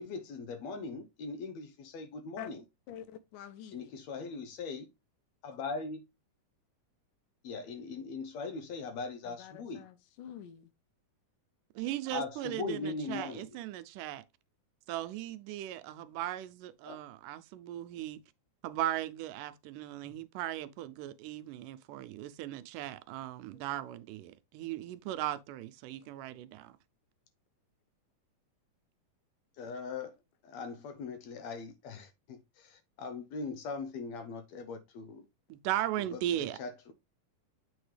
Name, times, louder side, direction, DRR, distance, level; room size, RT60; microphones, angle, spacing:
voice 1, 0.0-2.6 3.7-4.9 5.4-6.0 7.4-9.8 12.1-13.6 16.9-17.0 20.0-20.1 29.6-30.2 30.4-35.2 36.0-36.9, left 4 dB, 70° left, 1.7 m, -40 dB
voice 2, 2.9-3.9 9.2-10.7 23.5-23.7 26.0-26.1, left 9 dB, 85° left, 2.5 m, -48 dB
voice 3, 11.8-14.2 14.9-18.2 18.6-26.8 35.5-36.6, right 13 dB, 85° right, 2.2 m, -37 dB
7.9 x 4.6 x 3.3 m
omnidirectional pair, 3.7 m